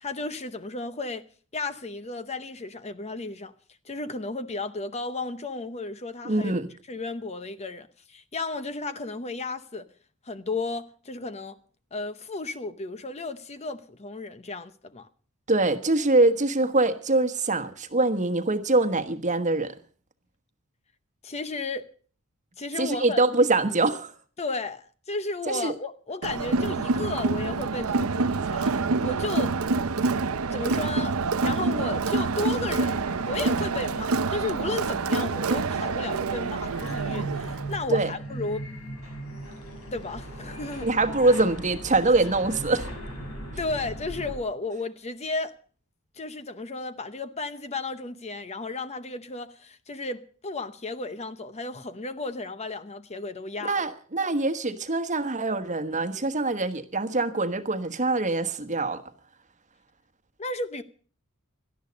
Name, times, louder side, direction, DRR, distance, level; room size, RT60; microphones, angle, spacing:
voice 1, 0.0-1.2 1.5-3.5 3.8-6.5 6.9-9.9 10.2-11.6 11.9-15.1 21.2-21.9 22.6-23.2 24.4-29.6 30.5-33.0 33.3-38.7 39.9-40.9 42.0-42.1 43.6-45.6 46.2-53.8 60.4-60.8, left 3 dB, 30° left, 0.8 m, -34 dB
voice 2, 6.2-6.7 15.5-19.7 22.8-24.1 25.5-25.7 37.9-38.1 40.8-42.9 53.7-59.0, right 2 dB, 35° right, 1.3 m, -24 dB
Crowd, 26.2-37.8, right 4 dB, 70° right, 0.7 m, -27 dB
sound 1, 32.4-44.4, right 1 dB, 70° left, 5.8 m, -39 dB
17.5 x 12.5 x 5.2 m
head